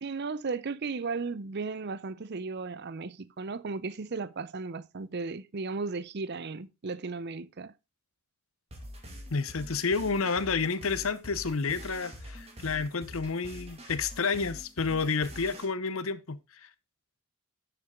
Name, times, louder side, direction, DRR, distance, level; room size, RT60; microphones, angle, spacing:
voice 1, 0.0-7.7, right 4 dB, 50° right, 0.6 m, -35 dB
sound 1, 8.7-15.6, equal, 30° right, 2.3 m, -45 dB
voice 2, 9.3-16.7, left 4 dB, 70° left, 0.8 m, -30 dB
10.5 x 6.8 x 3.7 m
head